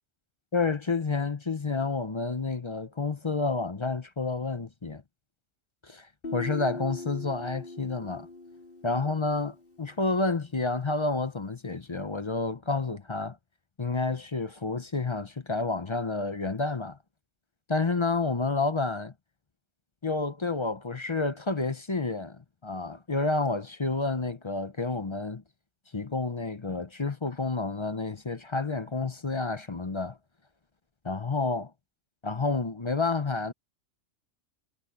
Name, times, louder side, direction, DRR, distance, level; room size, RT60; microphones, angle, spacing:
voice 1, 0.5-5.0 5.8-6.1 6.3-8.3 8.8-13.4 13.8-17.0 17.7-19.1 20.0-25.4 25.9-30.2 31.0-31.7 32.2-33.5, left 3 dB, 30° left, 0.7 m, -29 dB
Guitar, 6.2-9.9, left 2 dB, 45° left, 3.8 m, -41 dB
omnidirectional pair, 1.3 m